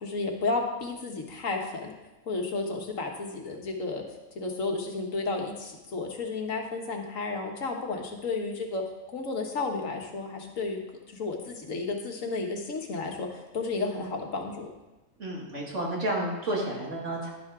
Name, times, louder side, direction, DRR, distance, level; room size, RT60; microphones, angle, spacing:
voice 1, 0.0-1.9 2.3-4.0 4.4-8.8 9.1-10.8 11.1-14.7, left 3 dB, 70° left, 2 dB, 1.7 m, -32 dB
voice 2, 15.2-17.3, right 1 dB, 60° right, -2 dB, 2.6 m, -31 dB
11.0 x 10.5 x 3.7 m, 1.1 s
omnidirectional pair, 1.4 m